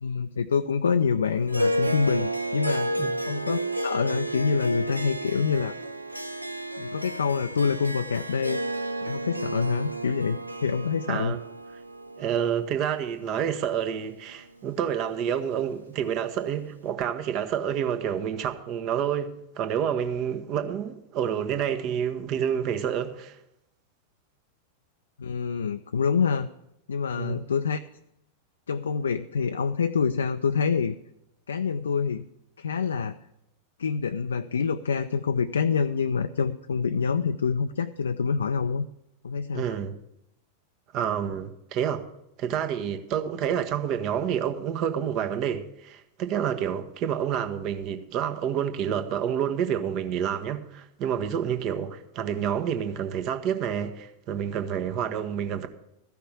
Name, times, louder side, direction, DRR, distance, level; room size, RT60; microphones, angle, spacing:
voice 1, 0.0-2.9 3.3-5.8 6.8-8.6 9.0-11.4 25.2-26.5 26.9-27.8 28.7-31.0 31.5-32.2 32.6-33.2 33.8-38.9 39.2-39.6, left 5 dB, 70° left, 0.4 m, -26 dB
Harp, 1.5-14.0, right 1 dB, 90° right, 0.6 m, -32 dB
voice 2, 11.1-11.4 12.2-23.3 27.1-27.4 39.5-40.0 40.9-42.0 42.4-55.7, right 8 dB, 40° right, 1.1 m, -28 dB
14.0 x 5.8 x 8.1 m
figure-of-eight pair, 90°, 0 cm